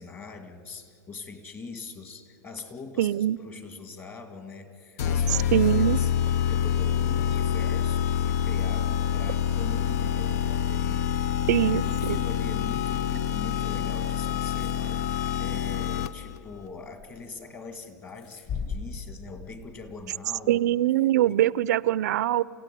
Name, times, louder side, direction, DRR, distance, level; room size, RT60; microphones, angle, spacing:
voice 1, 0.0-6.1 6.5-11.4 11.7-20.6 21.3-21.5, left 4 dB, 25° left, 9 dB, 2.1 m, -42 dB
voice 2, 3.0-3.4 5.3-6.0 11.5-11.8 12.1-12.2 20.5-22.4, right 13 dB, 75° right, 19 dB, 0.5 m, -23 dB
sound 1, 5.0-16.4, left 8 dB, 65° left, 0.8 m, -26 dB
sound 2, 11.8-20.5, left 5 dB, 45° left, 4.6 m, -44 dB
29.5 x 16.5 x 10.0 m, 2.7 s
supercardioid pair, 140°, 9 cm